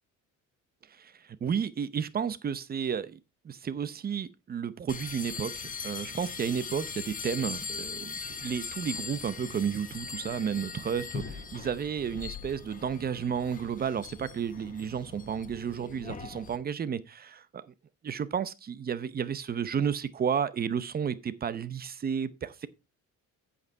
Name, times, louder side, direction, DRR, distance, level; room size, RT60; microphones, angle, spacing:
voice 1, 1.4-3.2 3.4-17.6 18.0-22.7, right 7 dB, 30° right, 0.8 m, -32 dB
sound 1, 4.9-16.6, left 5 dB, 25° left, 1.2 m, -40 dB
8.5 x 8.2 x 4.5 m
cardioid pair, 150°, 31 cm